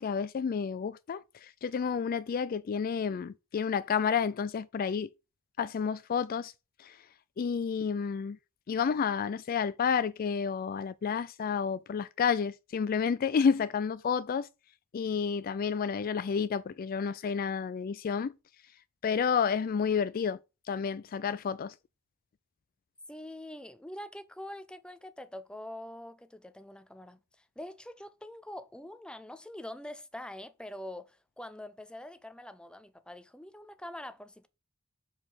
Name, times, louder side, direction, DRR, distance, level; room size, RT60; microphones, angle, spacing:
voice 1, 0.0-5.1 5.6-6.5 6.8-7.0 7.4-8.4 8.7-14.5 14.9-18.3 19.0-20.4 20.7-21.7, left 6 dB, 40° left, 0.3 m, -30 dB
voice 2, 23.1-34.5, left 1 dB, 5° left, 0.6 m, -44 dB
6.5 x 4.9 x 5.5 m
head